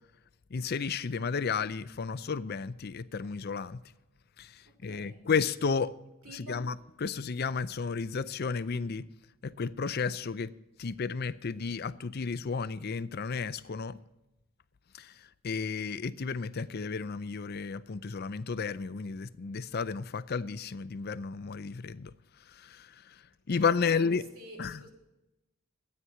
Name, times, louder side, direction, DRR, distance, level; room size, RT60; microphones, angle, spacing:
voice 1, 0.5-3.8 4.4-5.9 6.3-6.8 7.0-9.1 9.4-10.5 10.8-14.0 14.9-22.1 22.5-23.2 23.5-24.2 24.6-24.8, left 5 dB, 50° left, 0.5 m, -32 dB
voice 2, 4.6-5.2 6.2-6.7 23.5-24.9, right 1 dB, 75° right, 3.5 m, -49 dB
13.0 x 9.5 x 5.8 m
head